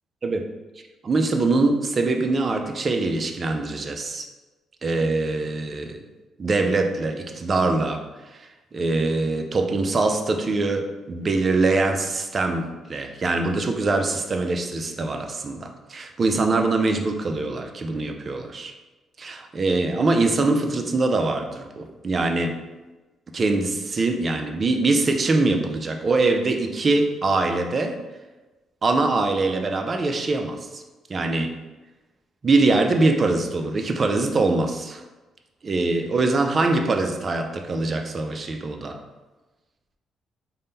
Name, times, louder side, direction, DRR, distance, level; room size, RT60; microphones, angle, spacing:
voice 1, 1.0-4.3 4.8-6.0 6.4-8.0 8.3-18.7 19.2-22.6 23.3-28.0 28.8-30.8 31.1-31.5 32.4-35.0 35.6-39.0, right 3 dB, 40° right, 5 dB, 0.4 m, -23 dB
3.6 x 2.1 x 4.0 m, 1.2 s
cardioid pair, 90°, 0 cm